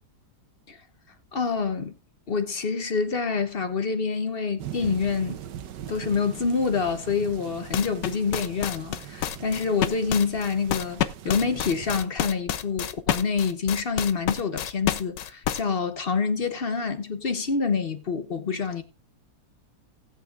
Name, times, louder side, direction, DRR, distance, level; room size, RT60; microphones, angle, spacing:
voice 1, 1.3-1.9 2.3-5.4 5.9-18.8, left 5 dB, 40° left, 0.9 m, -27 dB
sound 1, 4.6-12.1, right 11 dB, 85° right, 1.4 m, -41 dB
sound 2, 7.7-15.6, left 11 dB, 90° left, 1.4 m, -28 dB
18.0 x 8.4 x 2.4 m
omnidirectional pair, 1.8 m